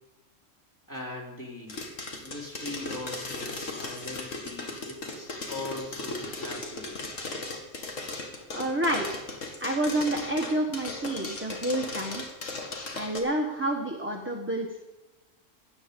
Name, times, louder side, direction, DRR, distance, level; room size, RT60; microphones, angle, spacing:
voice 1, 0.9-1.9 2.2-7.1, left 2 dB, 15° left, -3 dB, 3.5 m, -40 dB
sound 1, 1.7-13.2, left 3 dB, 75° left, 2.3 m, -37 dB
voice 2, 8.5-9.0 9.6-12.2 12.9-14.8, right 1 dB, 10° right, 1 dB, 1.4 m, -29 dB
16.5 x 10.5 x 5.3 m, 1.1 s
omnidirectional pair, 1.3 m